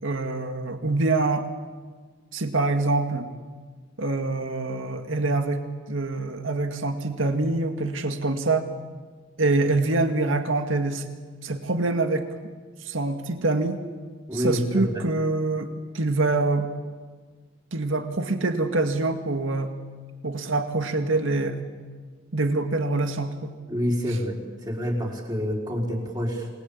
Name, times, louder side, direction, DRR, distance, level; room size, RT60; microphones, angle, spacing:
voice 1, 0.0-1.5 2.3-3.3 4.0-5.6 5.9-8.7 9.4-11.0 11.4-12.3 12.8-13.8 14.3-15.7 15.9-16.7 17.7-19.7 20.2-21.6 22.3-23.5, right 2 dB, 85° right, 7 dB, 2.1 m, -25 dB
voice 2, 14.3-15.0 23.7-26.5, equal, 20° right, -1 dB, 4.5 m, -27 dB
27.5 x 20.5 x 8.6 m, 1.4 s
head